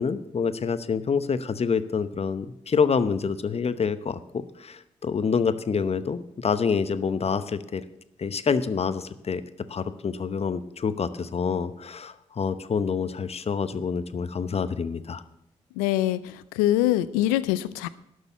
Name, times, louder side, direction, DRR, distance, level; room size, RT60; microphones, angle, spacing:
voice 1, 0.0-7.8 8.2-9.4 9.7-15.2, left 5 dB, 45° left, 14 dB, 0.8 m, -27 dB
voice 2, 15.8-17.9, left 14 dB, 90° left, 17 dB, 0.4 m, -24 dB
12.0 x 6.5 x 8.2 m, 0.82 s
hypercardioid pair, 40°, 14 cm